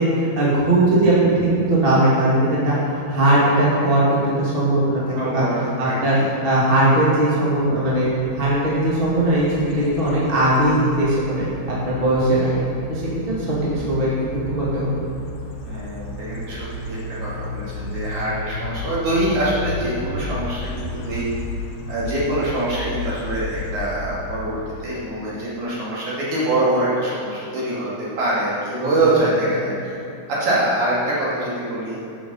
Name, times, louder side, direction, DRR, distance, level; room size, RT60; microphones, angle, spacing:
voice 1, 0.0-6.2 6.4-11.5 11.8-15.0 28.8-29.3, right 1 dB, 20° right, -7 dB, 1.5 m, -19 dB
voice 2, 5.2-6.2 15.6-21.3 21.9-29.7 30.3-32.0, right 1 dB, 55° right, -8 dB, 3.5 m, -24 dB
sound 1, 7.7-25.1, left 2 dB, 70° left, 1.7 m, -33 dB
11.0 x 6.8 x 5.5 m, 2.7 s
omnidirectional pair, 4.5 m